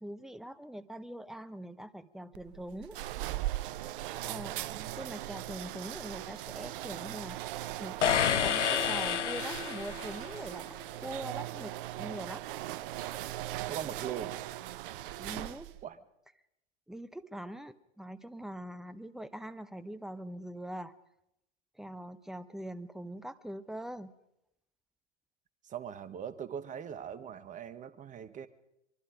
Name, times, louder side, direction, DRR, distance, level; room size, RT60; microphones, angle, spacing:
voice 1, 0.0-3.0 4.2-4.7 5.0-10.7 11.0-12.4 15.2-15.7 16.9-20.9 21.8-24.1, right 1 dB, ahead, 14 dB, 0.8 m, -43 dB
sound 1, 2.3-15.8, right 15 dB, 50° right, 0.8 m, -39 dB
voice 2, 4.7-5.0 13.7-14.3 15.8-16.0 25.6-28.5, right 8 dB, 20° right, 14 dB, 1.3 m, -41 dB
sound 2, 8.0-10.2, left 9 dB, 85° left, 0.7 m, -29 dB
24.0 x 23.0 x 5.0 m, 0.84 s
figure-of-eight pair, 100°, 35 cm